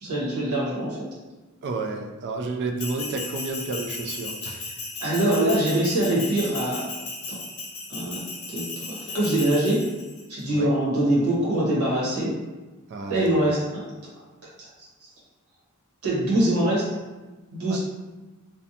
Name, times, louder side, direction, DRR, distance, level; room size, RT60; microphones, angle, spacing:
voice 1, 0.0-1.1 4.4-4.5 5.0-6.8 7.3-7.4 7.9-8.2 8.5-9.9 10.3-12.4 13.1-14.0 14.8-15.1 16.0-16.9 17.5-17.8, right 1 dB, 80° right, -7 dB, 1.1 m, -24 dB
voice 2, 1.6-4.6 10.5-10.7 12.9-13.5 17.7-17.8, right 3 dB, 50° right, 3 dB, 0.3 m, -31 dB
Bell, 2.8-10.2, left 3 dB, 80° left, 0.7 m, -35 dB
2.6 x 2.1 x 2.7 m, 1.2 s
head